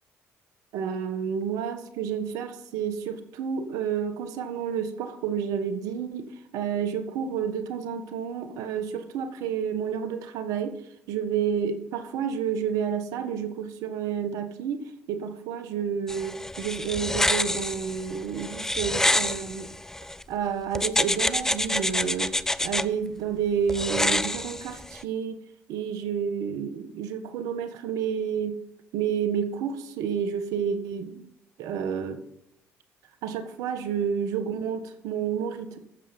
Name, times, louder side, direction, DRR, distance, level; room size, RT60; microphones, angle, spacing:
voice 1, 0.7-10.7 11.1-14.8 15.1-19.7 20.3-22.3 22.6-25.4 25.7-28.6 28.9-31.2 31.6-32.2 33.2-35.8, right 7 dB, 75° right, 9 dB, 1.4 m, -30 dB
sound 1, 16.1-20.2 20.7-22.8 23.7-25.0, left 1 dB, 10° left, 0.5 m, -27 dB
15.0 x 7.1 x 5.4 m, 0.77 s
supercardioid pair, 65°, 6 cm